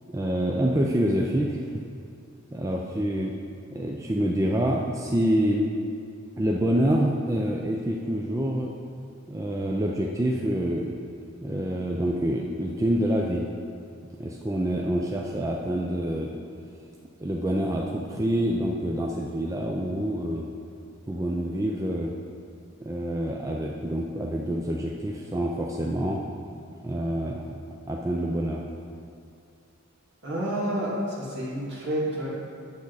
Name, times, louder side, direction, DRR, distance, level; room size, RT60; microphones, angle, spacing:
voice 1, 0.1-1.8 2.5-3.3 3.7-5.7 6.4-8.7 9.3-11.0 11.4-13.5 14.2-16.3 17.2-20.5 21.1-22.2 22.8-26.2 26.8-27.5 27.9-28.6, right 1 dB, 15° right, -1 dB, 0.4 m, -27 dB
voice 2, 30.2-32.3, right 1 dB, 55° right, -6 dB, 2.2 m, -29 dB
8.6 x 7.1 x 4.0 m, 2.5 s
head